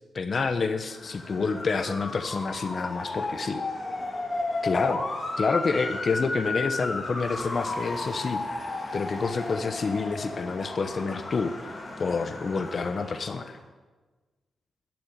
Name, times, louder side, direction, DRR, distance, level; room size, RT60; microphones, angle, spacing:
voice 1, 0.1-3.6 4.6-5.0 5.4-13.6, left 4 dB, 45° left, 9 dB, 1.0 m, -28 dB
Motor vehicle (road) / Siren, 0.8-13.5, left 2 dB, 30° left, 2.9 m, -34 dB
12.0 x 10.0 x 10.0 m, 1.3 s
cardioid pair, 100°, 0 cm